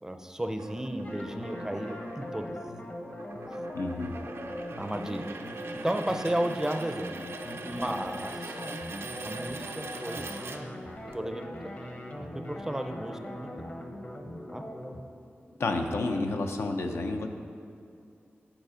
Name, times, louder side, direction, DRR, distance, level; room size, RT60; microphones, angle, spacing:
voice 1, 0.0-2.5 4.8-5.3 5.8-7.2 7.6-8.6 9.2-10.3 11.1-11.7 12.3-13.5 14.5-14.6, right 1 dB, 15° right, 6 dB, 0.5 m, -33 dB
sound 1, 0.6-11.2, right 3 dB, 75° right, 0.5 m, -42 dB
sound 2, 1.0-15.0, left 1 dB, 40° left, 0.8 m, -41 dB
voice 2, 3.7-4.2 15.6-17.3, left 2 dB, 85° left, 4 dB, 0.6 m, -30 dB
9.1 x 5.0 x 5.0 m, 2.4 s
wide cardioid pair, 100°, 4 cm